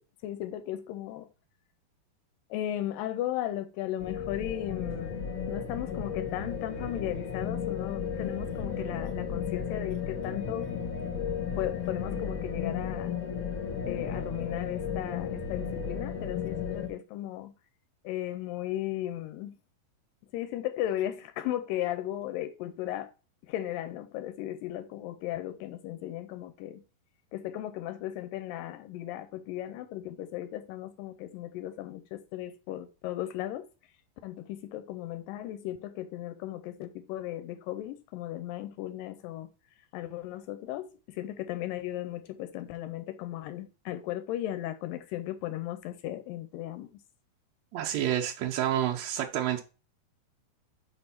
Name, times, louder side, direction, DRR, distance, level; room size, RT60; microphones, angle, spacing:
voice 1, 0.2-1.3 2.5-10.7 11.6-13.1 13.9-17.5 18.0-19.6 20.3-23.1 23.5-26.8 27.3-33.6 34.2-39.5 39.9-46.9, left 13 dB, 85° left, 2.2 m, -36 dB
sound 1, 4.0-16.9, left 6 dB, 55° left, 1.5 m, -34 dB
voice 2, 47.7-49.6, right 11 dB, 80° right, 1.6 m, -29 dB
4.9 x 4.4 x 5.6 m
omnidirectional pair, 4.0 m